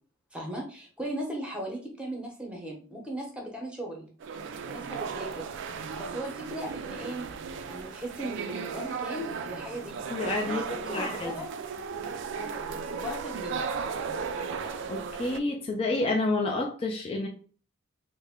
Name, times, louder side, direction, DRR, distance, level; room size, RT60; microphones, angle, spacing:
voice 1, 0.3-4.1 4.7-5.5 5.8-7.3 7.7-10.0 10.5-11.5 12.3-13.7, right 1 dB, 5° right, -1 dB, 0.8 m, -37 dB
sound 1, 4.2-15.4, right 5 dB, 60° right, 0.3 m, -36 dB
voice 2, 10.1-11.3 14.9-17.3, left 2 dB, 30° left, 1 dB, 0.4 m, -29 dB
3.3 x 2.1 x 3.5 m, 0.41 s
head